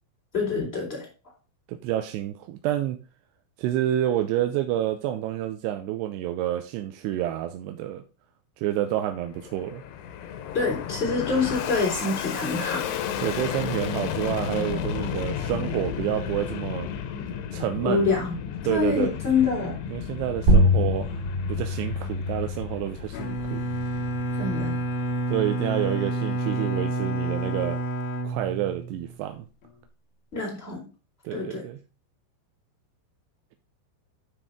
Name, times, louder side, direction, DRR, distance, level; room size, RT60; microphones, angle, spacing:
voice 1, 0.3-1.0 10.5-12.9 17.8-18.4 18.7-19.8 24.4-24.8 30.3-30.9 31.3-31.6, left 4 dB, 15° left, -3 dB, 3.3 m, -26 dB
voice 2, 1.7-3.0 3.6-8.0 8.6-9.8 13.2-16.9 17.5-18.2 18.6-19.1 19.9-21.1 21.5-23.6 25.3-27.8 28.2-29.5 31.2-31.8, right 12 dB, 85° right, 6 dB, 2.7 m, -28 dB
Fixed-wing aircraft airplane, 9.1-25.7, left 8 dB, 85° left, 3.1 m, -33 dB
sound 1, 20.5-25.5, equal, 70° right, 3.6 m, -26 dB
Bowed string instrument, 23.1-29.2, right 1 dB, 70° left, 2.7 m, -29 dB
12.0 x 4.4 x 3.6 m, 0.34 s
omnidirectional pair, 5.0 m